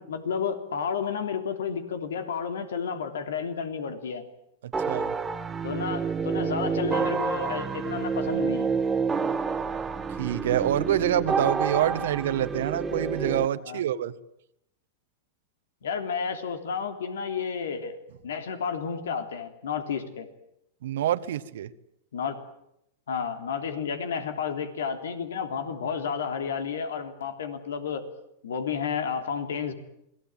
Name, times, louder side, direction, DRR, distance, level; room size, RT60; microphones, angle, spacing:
voice 1, 0.0-4.2 5.6-8.8 11.9-12.0 13.6-13.8 15.8-18.0 18.2-20.3 22.1-22.3 23.1-28.0 28.4-29.7, left 6 dB, 85° left, 8 dB, 3.2 m, -31 dB
voice 2, 4.6-5.1 10.2-14.1 20.8-21.7, right 11 dB, 75° right, 11 dB, 1.4 m, -26 dB
sound 1, 4.7-13.5, right 5 dB, 15° right, 1.7 m, -29 dB
27.5 x 20.0 x 9.0 m, 0.79 s
hypercardioid pair, 120°, 0 cm